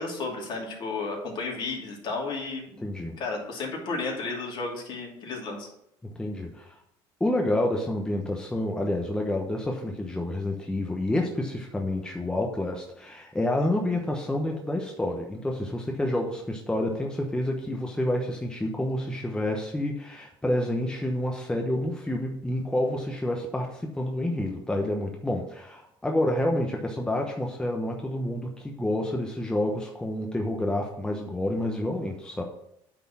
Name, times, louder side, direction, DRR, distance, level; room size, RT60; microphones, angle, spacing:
voice 1, 0.0-2.9 3.2-5.7, left 3 dB, 50° left, -1 dB, 2.8 m, -33 dB
voice 2, 2.8-3.2 6.2-6.8 7.2-32.4, left 1 dB, 10° left, 1 dB, 1.0 m, -29 dB
9.0 x 4.4 x 5.9 m, 0.76 s
cardioid pair, 110°, 10 cm